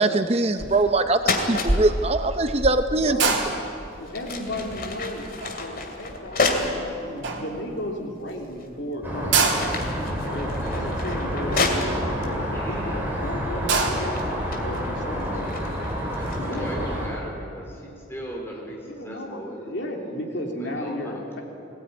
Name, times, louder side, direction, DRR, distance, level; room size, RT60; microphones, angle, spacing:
voice 1, 0.0-3.4, right 2 dB, 30° right, 8 dB, 0.6 m, -22 dB
sound 1, 0.6-0.9 1.2-1.7 3.4-3.5 4.0-6.8 7.5-7.6 8.3-8.8 9.1-12.3 13.1-13.4 13.7-16.7, left 3 dB, 50° left, 2.6 m, -30 dB
sound 2, 0.6-0.9 1.2-6.8 7.2-8.0 8.4-8.5 8.7-8.8 9.1-12.7 13.1-13.2 13.5-14.2, right 4 dB, 75° right, 2.9 m, -27 dB
voice 2, 2.9-3.4 3.9-5.2 5.6-9.4 10.3-14.2 14.6-15.6 16.4-17.0 18.8-21.4, left 1 dB, 70° left, 1 dB, 3.2 m, -34 dB
sound 3, 9.0-17.1, equal, 10° right, 4.0 m, -29 dB
voice 3, 12.5-13.0 16.1-19.6 19.9-20.2 20.6-21.4, equal, 10° left, -1 dB, 4.1 m, -38 dB
20.5 x 18.0 x 9.5 m, 2.7 s
head